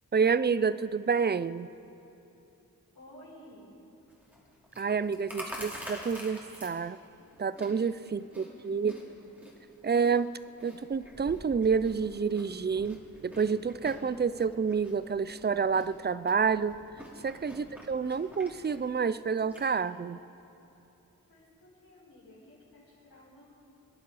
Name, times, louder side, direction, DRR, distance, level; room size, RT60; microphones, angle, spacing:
voice 1, 0.1-1.7 4.8-7.0 7.4-9.0 9.8-10.3 10.6-13.0 13.2-16.8 17.2-20.2, right 5 dB, 30° right, 15 dB, 0.4 m, -28 dB
voice 2, 2.9-3.7 8.4-9.3 21.3-23.5, left 1 dB, 70° left, -7 dB, 4.2 m, -54 dB
Chewing mastication, 4.1-19.7, equal, 5° right, 2.8 m, -48 dB
24.5 x 10.5 x 4.8 m, 3.0 s
wide cardioid pair, 60°, 37 cm